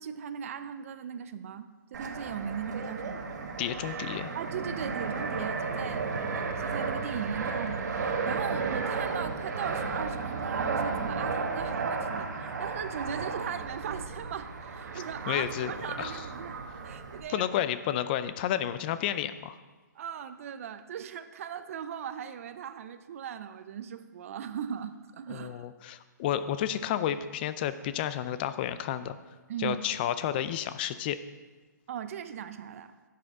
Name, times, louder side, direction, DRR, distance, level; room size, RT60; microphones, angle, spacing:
voice 1, 0.0-3.3 4.3-6.1 6.4-17.5 19.9-25.7 29.5-29.8 31.9-32.9, right 8 dB, 45° right, 11 dB, 0.5 m, -38 dB
Fixed-wing aircraft airplane, 1.9-17.2, right 4 dB, 65° right, 1.3 m, -33 dB
voice 2, 3.6-4.3 14.9-15.7 16.0-16.2 17.3-19.6 25.3-29.2 29.6-31.2, left 11 dB, 30° left, 13 dB, 0.4 m, -31 dB
11.0 x 7.0 x 3.7 m, 1.3 s
hypercardioid pair, 145°, 10 cm